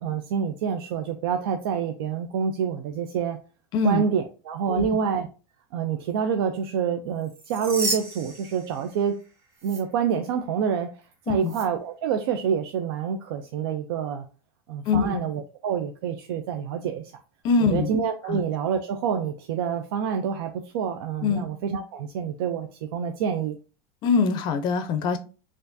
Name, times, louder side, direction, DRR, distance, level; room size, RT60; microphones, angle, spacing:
voice 1, 0.0-3.4 3.8-5.3 5.7-9.2 9.6-11.0 11.3-14.3 14.7-17.1 17.7-23.6, right 7 dB, 70° right, 5 dB, 0.4 m, -27 dB
voice 2, 3.7-4.0 4.7-4.9 11.3-11.5 14.9-15.2 17.4-17.9 18.3-18.4 21.2-21.5 24.0-25.2, left 5 dB, 35° left, 9 dB, 0.5 m, -23 dB
sound 1, 7.2-9.2 9.6-9.8 11.4-11.6, right 2 dB, 20° right, 1.4 m, -33 dB
4.4 x 2.5 x 2.6 m, 0.35 s
supercardioid pair, 155°, 13 cm